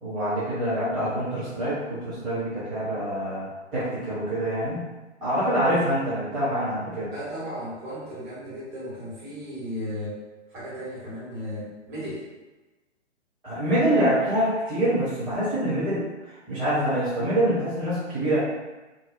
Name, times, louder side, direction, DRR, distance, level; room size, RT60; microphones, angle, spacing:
voice 1, 0.0-4.9 5.2-7.1 13.4-18.4, right 1 dB, 10° right, -15 dB, 0.7 m, -25 dB
voice 2, 7.1-10.2 10.5-12.2, equal, 40° right, -8 dB, 1.4 m, -35 dB
2.6 x 2.1 x 2.5 m, 1.1 s
figure-of-eight pair, 125°, 36 cm